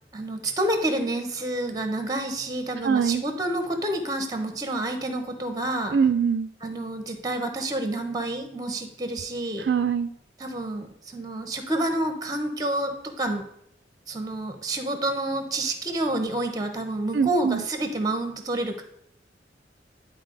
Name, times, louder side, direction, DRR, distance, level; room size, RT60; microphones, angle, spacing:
voice 1, 0.1-6.0 6.6-9.7 10.4-13.4 14.1-18.8, right 1 dB, 20° right, 6 dB, 1.0 m, -28 dB
voice 2, 2.8-3.2 5.9-6.5 9.6-10.1 17.1-17.6, right 6 dB, 65° right, 9 dB, 0.4 m, -23 dB
11.0 x 4.2 x 3.9 m, 0.71 s
head